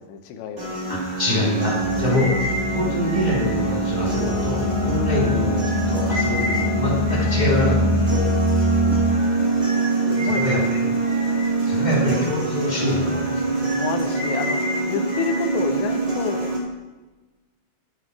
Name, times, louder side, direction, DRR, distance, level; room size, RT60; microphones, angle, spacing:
voice 1, 0.0-0.7 1.9-2.1 8.1-9.4 10.1-10.5 13.7-14.6 14.9-16.5, left 6 dB, 75° left, 5 dB, 3.0 m, -30 dB
sound 1, 0.6-16.6, right 2 dB, 75° right, 0.5 m, -25 dB
voice 2, 0.9-2.3 2.7-8.2 10.2-10.8 11.6-13.7, left 1 dB, 25° right, -6 dB, 0.9 m, -25 dB
sound 2, 1.7-9.1, right 1 dB, 40° left, 3.4 m, -24 dB
13.5 x 7.9 x 4.8 m, 1.2 s
omnidirectional pair, 5.6 m